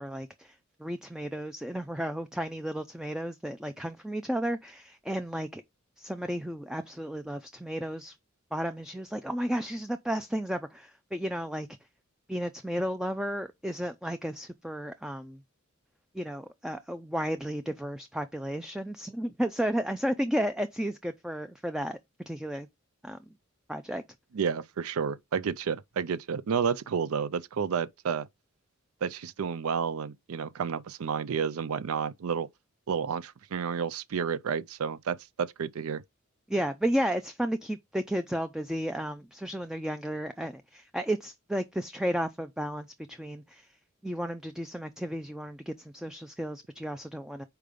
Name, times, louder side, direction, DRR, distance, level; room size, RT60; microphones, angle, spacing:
voice 1, 0.0-5.6 6.0-8.2 8.5-11.7 12.3-15.4 16.1-22.0 22.3-22.7 23.0-23.2 23.7-24.0 36.5-43.8 44.0-47.4, equal, 5° right, 0.3 m, -33 dB
voice 2, 24.3-28.3 29.0-32.5 32.9-36.0, right 6 dB, 85° right, 0.4 m, -31 dB
5.2 x 4.6 x 5.0 m
head